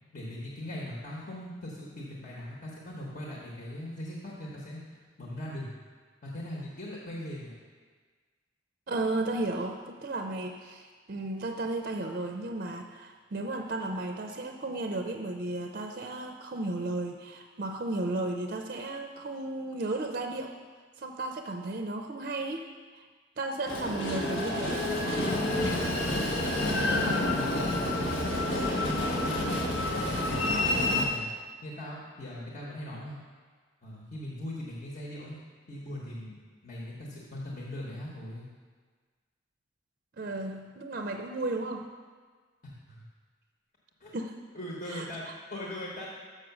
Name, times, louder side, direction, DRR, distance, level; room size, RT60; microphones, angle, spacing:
voice 1, 0.1-4.8 5.2-5.7 6.2-7.5 26.7-28.0 29.2-29.9 30.2-31.3 31.6-33.1 33.8-35.4 35.7-36.3 36.6-38.5 42.6-43.0 44.0-44.1 44.5-46.1, left 1 dB, 45° left, -4 dB, 1.1 m, -40 dB
voice 2, 8.9-20.5 21.0-23.0 23.4-24.8 40.2-41.9 44.1-44.3 44.9-45.1, right 2 dB, 45° right, 4 dB, 0.5 m, -34 dB
Train, 23.7-31.1, left 1 dB, 85° left, 1.1 m, -28 dB
6.6 x 6.2 x 5.9 m, 1.5 s
head